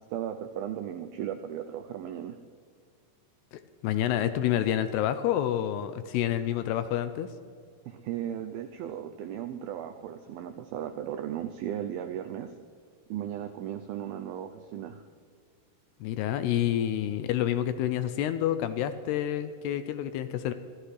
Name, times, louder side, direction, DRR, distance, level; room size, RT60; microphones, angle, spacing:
voice 1, 0.1-2.4 7.9-12.5 13.1-15.0, right 10 dB, 90° right, 7 dB, 2.1 m, -36 dB
voice 2, 3.5-7.3 16.0-20.5, left 11 dB, 80° left, 11 dB, 2.5 m, -28 dB
24.5 x 14.5 x 3.3 m, 2.1 s
omnidirectional pair, 5.0 m